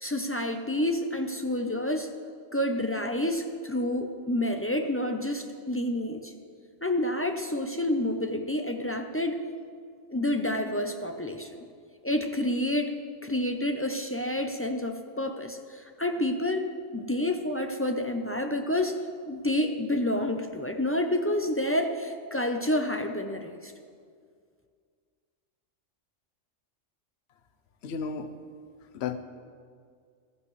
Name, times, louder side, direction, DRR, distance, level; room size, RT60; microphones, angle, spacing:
voice 1, 0.0-2.1 2.5-6.3 6.8-9.4 10.1-11.6 12.0-12.9 13.2-18.9 19.3-23.7, left 1 dB, 20° left, 4 dB, 0.3 m, -29 dB
voice 2, 27.8-28.3 28.8-29.2, left 6 dB, 65° left, 9 dB, 1.0 m, -33 dB
15.0 x 14.0 x 3.2 m, 2.1 s
omnidirectional pair, 1.3 m